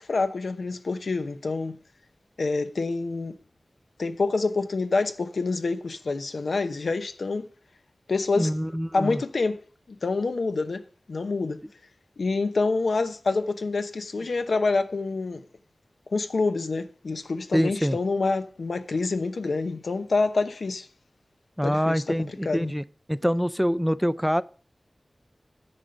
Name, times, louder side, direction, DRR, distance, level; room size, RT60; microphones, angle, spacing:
voice 1, 0.0-1.8 2.4-3.4 4.0-7.5 8.1-8.5 8.9-9.6 10.0-10.8 11.1-11.6 12.2-15.4 16.1-20.9 21.6-22.2 22.4-22.7, left 3 dB, 90° left, 0.8 m, -27 dB
voice 2, 8.4-9.2 17.5-18.0 21.6-22.8 23.1-24.4, equal, ahead, 0.4 m, -25 dB
9.8 x 5.1 x 6.8 m
wide cardioid pair, 55°, 0 cm